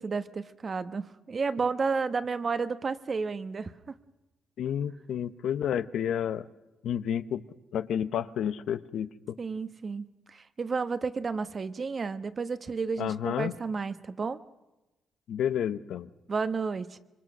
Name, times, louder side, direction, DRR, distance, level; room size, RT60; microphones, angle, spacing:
voice 1, 0.0-3.9 9.4-14.4 16.3-17.0, right 4 dB, 40° right, 11 dB, 1.3 m, -32 dB
voice 2, 4.6-6.5 6.8-7.4 7.7-9.1 13.0-13.5 15.3-16.1, left 9 dB, 75° left, 13 dB, 0.9 m, -30 dB
26.0 x 24.0 x 6.2 m, 1.0 s
cardioid pair, 90°, 0 cm